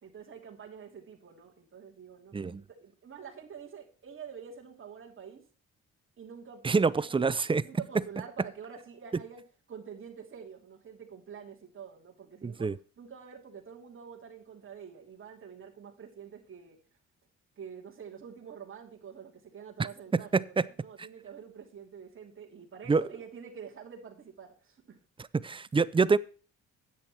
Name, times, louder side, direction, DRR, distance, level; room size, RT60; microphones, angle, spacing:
voice 1, 0.0-5.4 6.2-7.3 7.6-16.8 17.6-25.0, right 7 dB, 45° right, 2.8 m, -47 dB
voice 2, 6.6-7.6 12.4-12.8 20.3-20.4 22.9-23.0 25.4-26.2, right 4 dB, 15° right, 0.5 m, -25 dB
10.5 x 8.1 x 4.3 m
cardioid pair, 90°, 30 cm